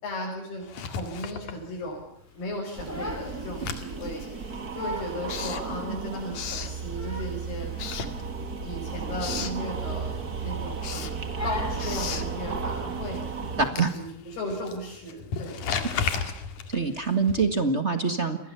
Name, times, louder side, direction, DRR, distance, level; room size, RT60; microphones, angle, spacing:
voice 1, 0.0-2.0 2.4-4.5 4.7-7.7 8.6-11.1 11.4-13.4 13.7-15.7, left 1 dB, 85° left, -2 dB, 7.6 m, -36 dB
Writing, 0.6-2.2 2.5-7.3 7.7-8.7 9.0-9.6 10.1-17.7, left 6 dB, 60° left, 3.4 m, -36 dB
Crying sobbing, 2.5-3.4 3.7-4.0 4.4-4.5 4.8-5.2 5.7-5.8 6.6-7.5 7.7-8.0 8.3-8.5 8.8-9.0 9.8-10.4 10.7-11.0 11.4-11.9, equal, 5° left, 3.8 m, -38 dB
sound 1, 2.8-13.7, right 5 dB, 30° right, 1.9 m, -34 dB
voice 2, 13.6-13.9 16.7-18.4, right 4 dB, 65° right, 8 dB, 0.6 m, -24 dB
29.0 x 21.5 x 7.0 m, 0.76 s
omnidirectional pair, 4.4 m